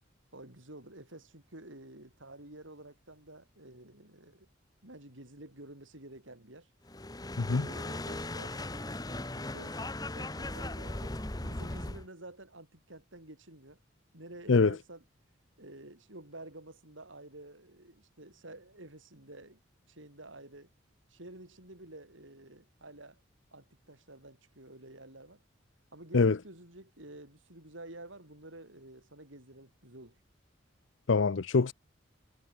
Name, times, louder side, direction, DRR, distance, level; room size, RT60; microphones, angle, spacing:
voice 1, 0.3-4.5 4.8-6.7 7.5-8.7 9.0-13.8 14.1-15.0 15.6-19.6 19.9-20.7 21.1-23.2 23.5-25.4 25.9-30.2, right 1 dB, 80° right, 7.2 m, -50 dB
sound 1, 6.9-12.1, left 2 dB, 20° left, 1.3 m, -38 dB
voice 2, 7.4-7.7 14.5-14.7 26.1-26.4 31.1-31.7, left 4 dB, 75° left, 0.7 m, -24 dB
head